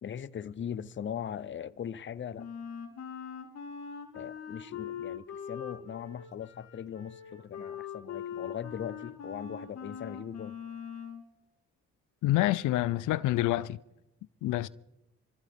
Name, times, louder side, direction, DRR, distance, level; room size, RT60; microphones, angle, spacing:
voice 1, 0.0-2.5 4.1-10.6, left 8 dB, 40° left, 0.7 m, -40 dB
Wind instrument woodwind instrument, 2.4-11.2, left 7 dB, 60° left, 3.3 m, -42 dB
voice 2, 12.2-13.8 14.4-14.7, left 16 dB, 80° left, 0.5 m, -27 dB
27.0 x 14.5 x 3.6 m
cardioid pair, 90°, 30 cm